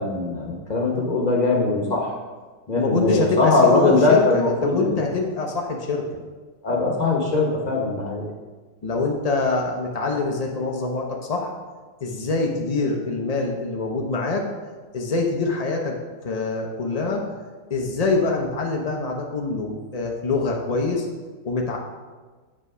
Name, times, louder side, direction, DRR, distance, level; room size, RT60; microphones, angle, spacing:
voice 1, 0.0-2.1 2.7-5.1 6.6-8.2, left 3 dB, 25° left, 0 dB, 1.1 m, -21 dB
voice 2, 2.7-6.2 8.8-11.5 12.0-14.5 14.9-16.0 16.2-17.2 17.7-21.1 21.4-21.8, left 3 dB, 80° left, 1 dB, 0.3 m, -25 dB
7.4 x 5.4 x 4.9 m, 1.4 s
omnidirectional pair, 2.0 m